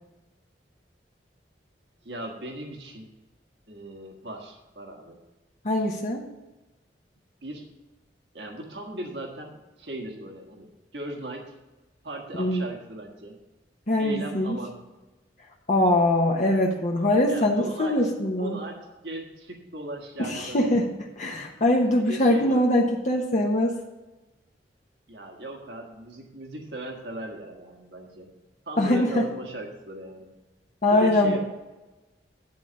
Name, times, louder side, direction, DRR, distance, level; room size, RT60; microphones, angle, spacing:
voice 1, 2.0-3.1 3.7-5.2 7.4-7.7 8.3-10.7 10.9-11.5 12.0-13.4 14.0-14.8 17.3-20.7 22.0-22.6 25.1-28.3 28.6-30.3 30.9-31.4, right 1 dB, 70° right, 1 dB, 1.5 m, -38 dB
voice 2, 5.6-6.2 12.4-12.7 13.9-14.6 15.7-18.6 20.2-20.9 21.2-23.8 28.8-29.2 30.8-31.4, left 1 dB, 45° left, 0 dB, 1.0 m, -22 dB
10.5 x 4.0 x 7.1 m, 1.1 s
head